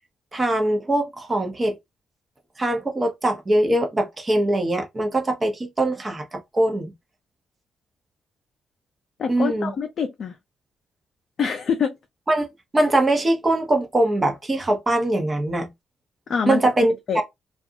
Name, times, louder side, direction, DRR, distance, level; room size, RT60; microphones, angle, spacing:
voice 1, 0.3-1.8 2.6-6.9 9.3-9.7 12.3-12.5 12.7-15.7 16.5-16.9, right 1 dB, 30° right, 0.9 m, -22 dB
voice 2, 9.2-10.4 11.4-11.9 16.3-16.6 17.1-17.2, left 6 dB, 60° left, 0.5 m, -25 dB
2.4 x 2.3 x 2.7 m
supercardioid pair, 55°, 0 cm